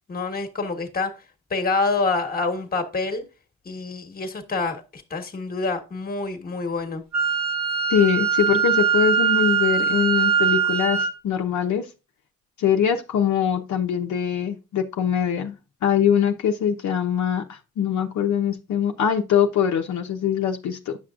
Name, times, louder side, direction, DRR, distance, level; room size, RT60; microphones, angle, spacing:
voice 1, 0.1-1.2 1.5-3.2 3.6-7.0, left 3 dB, 30° left, 1.4 m, -27 dB
Wind instrument woodwind instrument, 7.1-11.1, right 7 dB, 65° right, 1.9 m, -21 dB
voice 2, 7.9-11.9 12.6-15.5 15.8-21.0, left 8 dB, 70° left, 0.9 m, -23 dB
8.9 x 6.1 x 2.5 m
cardioid pair, 90°, 30 cm